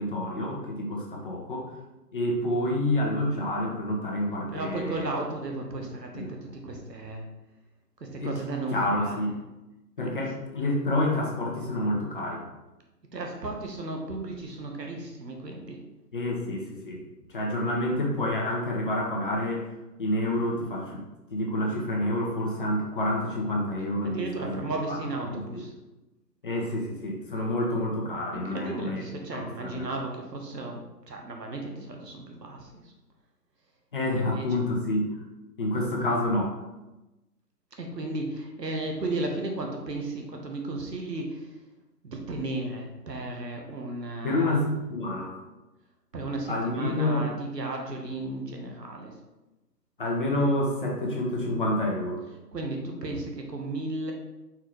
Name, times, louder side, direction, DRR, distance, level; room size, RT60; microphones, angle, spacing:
voice 1, 0.0-1.7 2.1-5.1 6.1-6.3 8.2-8.4 8.7-9.3 10.0-12.4 16.1-19.7 20.0-21.0 21.3-24.6 24.9-25.0 25.3-25.6 26.4-29.1 29.3-29.9 33.9-35.1 35.6-36.5 44.2-45.4 46.4-47.3 50.0-52.2, left 1 dB, 30° left, -1 dB, 0.7 m, -28 dB
voice 2, 4.5-7.2 8.0-9.2 10.0-10.5 13.1-15.8 24.0-25.7 28.3-32.7 34.1-34.4 37.8-41.4 42.0-44.5 46.1-49.1 52.5-54.1, right 2 dB, 80° right, 2 dB, 1.2 m, -34 dB
4.5 x 3.6 x 3.1 m, 1.0 s
figure-of-eight pair, 140°, 49 cm